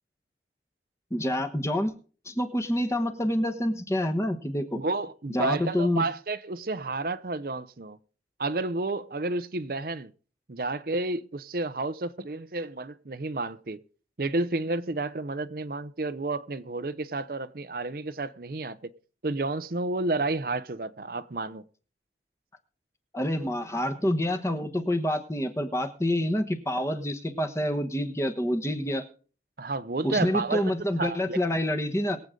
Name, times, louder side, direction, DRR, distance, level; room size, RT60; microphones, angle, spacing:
voice 1, 1.1-1.9 2.2-4.8 5.3-6.0 23.1-29.1 30.0-32.2, left 1 dB, 15° left, 1.2 m, -27 dB
voice 2, 4.7-8.0 8.4-10.1 10.5-13.8 14.2-18.8 19.2-21.6 29.6-31.4, right 2 dB, 55° right, 0.7 m, -31 dB
22.5 x 7.9 x 3.8 m
head